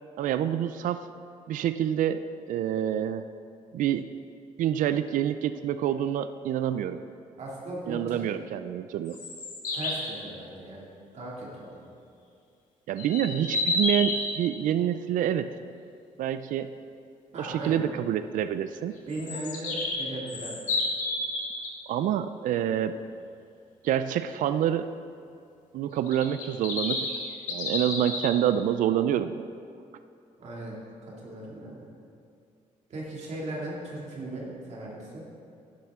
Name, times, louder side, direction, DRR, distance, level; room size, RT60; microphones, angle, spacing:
voice 1, 0.2-1.1 1.5-2.2 2.5-3.3 3.7-4.2 4.6-7.0 7.9-9.2 12.9-15.5 16.2-16.7 17.4-19.0 21.9-23.0 23.8-24.9 25.7-27.1 27.5-29.4, right 10 dB, 80° right, 11 dB, 0.4 m, -27 dB
voice 2, 7.4-8.3 9.7-10.9 11.1-11.8 17.3-17.9 19.1-20.6 30.4-31.9 32.9-35.4, right 2 dB, 55° right, -5 dB, 2.4 m, -37 dB
sound 1, 9.0-10.1 13.0-14.3 19.1-21.7 26.1-28.3, left 2 dB, 75° left, 1.9 m, -30 dB
12.0 x 10.5 x 3.7 m, 2.4 s
cardioid pair, 115°, 13 cm